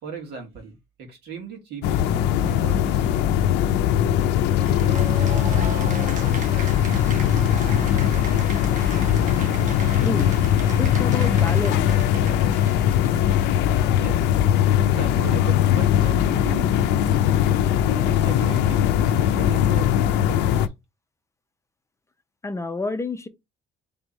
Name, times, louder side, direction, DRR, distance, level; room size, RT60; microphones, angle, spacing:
voice 1, 0.0-3.2 13.9-14.4 14.7-17.2 17.8-20.7, right 5 dB, 75° right, 1.9 m, -38 dB
sound 1, 1.8-20.7, left 10 dB, 90° left, 0.5 m, -20 dB
Cheering / Applause, 4.6-14.1, right 5 dB, 45° right, 1.1 m, -38 dB
voice 2, 10.8-11.9 22.4-23.3, left 3 dB, 15° left, 0.6 m, -28 dB
3.6 x 3.5 x 4.0 m
cardioid pair, 110°, 17 cm